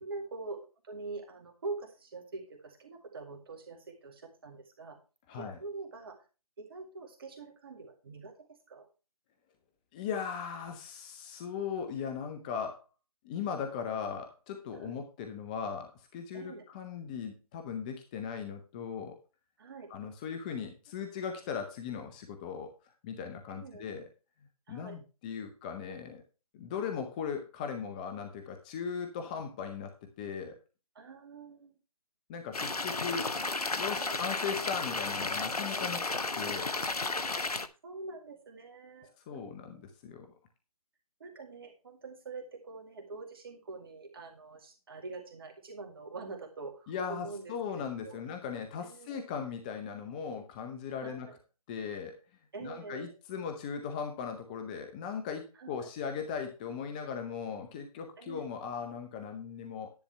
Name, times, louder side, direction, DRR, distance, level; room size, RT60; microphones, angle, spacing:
voice 1, 0.0-5.0 5.3-6.2 6.6-8.9 14.7-15.0 16.3-16.6 19.6-19.9 23.5-23.8 24.7-25.0 30.9-31.7 32.9-33.0 33.9-34.2 37.3-37.4 37.8-39.9 41.2-48.2 48.8-49.2 51.0-51.4 52.5-53.1 55.6-55.9 58.2-58.4, right 3 dB, 40° right, 3 dB, 2.2 m, -45 dB
voice 2, 5.3-5.6 9.9-12.8 13.2-19.2 19.9-22.7 23.0-24.1 24.7-26.2 26.5-30.6 32.3-36.8 39.3-40.3 46.9-51.3 51.7-52.2 52.6-59.9, left 6 dB, 15° left, 5 dB, 0.7 m, -38 dB
sound 1, 32.5-37.7, left 3 dB, 85° left, 1.0 m, -33 dB
10.5 x 9.8 x 3.3 m, 0.32 s
figure-of-eight pair, 155°, 19 cm